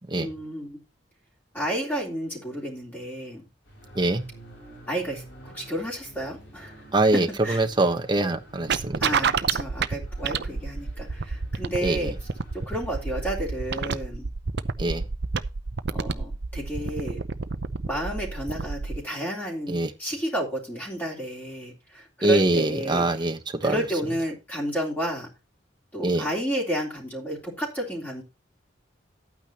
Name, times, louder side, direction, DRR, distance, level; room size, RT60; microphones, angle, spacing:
voice 1, 0.2-0.8 1.5-3.4 4.9-7.6 9.0-12.1 12.5-14.3 15.9-17.2 17.9-23.0 23.6-25.3 25.9-28.2, right 1 dB, 10° left, 3.5 m, -31 dB
sound 1, 3.6-14.0, right 1 dB, 80° left, 4.9 m, -49 dB
voice 2, 6.9-9.0 11.8-12.1 14.8-15.0 19.7-19.9 22.2-23.8 26.0-26.2, right 2 dB, 25° right, 1.1 m, -23 dB
sound 2, 8.7-19.0, right 5 dB, 65° right, 0.7 m, -29 dB
12.0 x 9.1 x 2.9 m
head